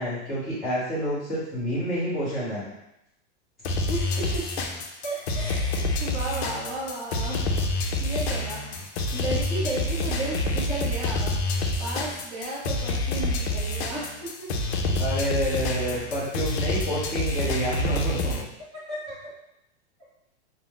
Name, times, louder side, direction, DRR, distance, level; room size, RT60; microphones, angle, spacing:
voice 1, 0.0-2.7 14.8-18.4, equal, ahead, -19 dB, 0.9 m, -28 dB
sound 1, 3.6-18.4, left 2 dB, 65° left, 0.5 m, -27 dB
voice 2, 3.9-4.5 5.0-7.4 8.0-11.3 11.8-14.5 18.7-19.2, right 1 dB, 20° right, -8 dB, 0.6 m, -34 dB
2.5 x 2.0 x 3.6 m, 0.83 s
supercardioid pair, 170°, 34 cm